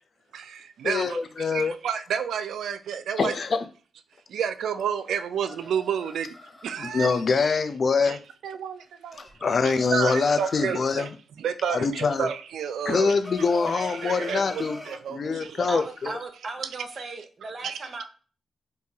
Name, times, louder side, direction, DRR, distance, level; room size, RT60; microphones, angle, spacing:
voice 1, 0.3-3.4 4.3-6.3 6.6-7.2 8.0-8.2 8.4-9.2 9.6-11.1 11.4-13.2 13.7-15.6 17.6-17.8, right 7 dB, 80° right, 0.3 m, -30 dB
voice 2, 0.8-1.7 3.2-3.6 6.8-8.2 9.4-11.1 11.7-12.3 12.9-14.8 15.1-16.1, left 4 dB, 55° left, 0.4 m, -24 dB
sound 1, 5.1-7.1 9.1-11.1 12.9-15.0, left 1 dB, 25° left, 0.8 m, -42 dB
voice 3, 15.7-18.0, right 3 dB, 50° right, 0.8 m, -37 dB
3.7 x 2.6 x 2.7 m
cardioid pair, 55°, 0 cm